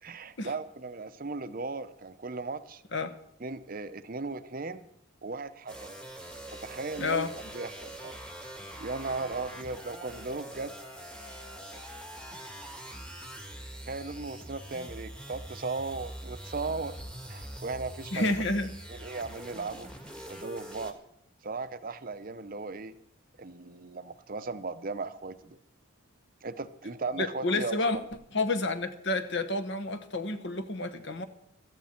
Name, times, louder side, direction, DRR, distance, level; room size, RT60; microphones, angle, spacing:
voice 1, 0.0-2.8 3.4-4.9 5.2-6.0 6.5-8.2 8.8-10.7 13.9-17.0 17.3-18.3 18.9-19.9 20.3-21.0 21.4-22.9 23.4-25.6 26.4-28.0, right 3 dB, 40° right, 12 dB, 0.6 m, -37 dB
sound 1, 5.7-20.9, right 1 dB, 5° left, 1.4 m, -44 dB
voice 2, 7.0-7.3 12.3-12.4 18.1-18.7 27.2-28.0 28.3-31.2, left 2 dB, 55° left, 9 dB, 1.1 m, -30 dB
16.5 x 13.5 x 4.4 m, 0.72 s
head